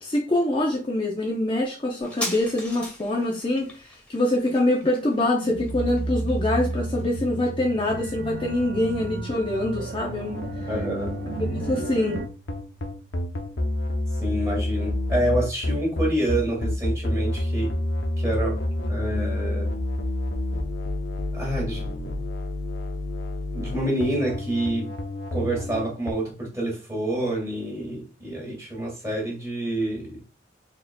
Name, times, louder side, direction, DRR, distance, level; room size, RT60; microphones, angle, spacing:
voice 1, 0.0-10.4 11.5-12.2, left 1 dB, 25° left, 0.5 m, -25 dB
sound 1, 2.0-9.1 9.4-9.5, left 1 dB, 5° left, 1.3 m, -40 dB
sound 2, 5.5-12.3, right 3 dB, 55° right, 0.4 m, -32 dB
sound 3, 10.3-26.1, left 1 dB, 80° left, 0.7 m, -28 dB
voice 2, 10.7-11.2 14.2-17.7 18.2-18.6 18.9-19.7 21.3-21.9 23.5-24.9 25.3-30.2, right 1 dB, 15° right, 1.9 m, -27 dB
4.3 x 4.0 x 2.2 m
head